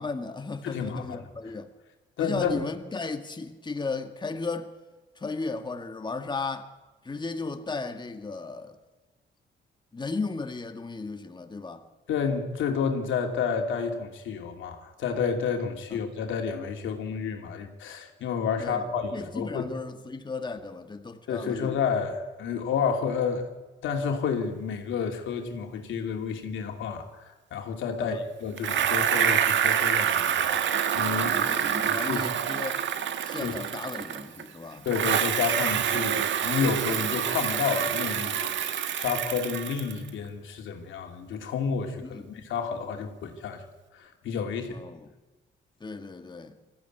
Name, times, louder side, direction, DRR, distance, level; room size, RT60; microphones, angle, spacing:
voice 1, 0.0-1.7 2.2-4.7 5.1-6.7 7.0-8.8 9.9-11.9 15.9-16.1 18.6-18.9 19.1-21.8 28.0-28.2 31.3-32.8 33.2-34.9 42.0-42.3 44.7-45.1 45.8-46.6, left 4 dB, 20° left, 1.8 m, -35 dB
voice 2, 0.6-1.2 2.2-2.6 12.1-19.7 21.3-23.5 23.8-31.5 31.8-32.3 33.4-33.5 34.8-38.5 38.9-43.6 43.9-44.8, left 6 dB, 75° left, 2.8 m, -30 dB
Bicycle, 28.6-34.4 34.9-40.1, right 9 dB, 70° right, 1.6 m, -27 dB
22.5 x 14.5 x 9.4 m
cardioid pair, 90°, 20 cm